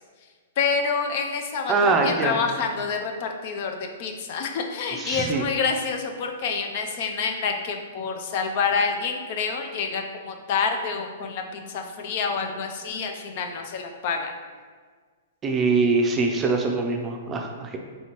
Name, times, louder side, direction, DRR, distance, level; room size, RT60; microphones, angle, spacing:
voice 1, 0.6-14.3, left 5 dB, 50° left, 4 dB, 0.5 m, -27 dB
voice 2, 1.7-2.4 5.0-5.4 15.4-17.8, right 3 dB, 20° right, 2 dB, 0.5 m, -23 dB
3.3 x 2.8 x 4.5 m, 1.5 s
hypercardioid pair, 120°, 0 cm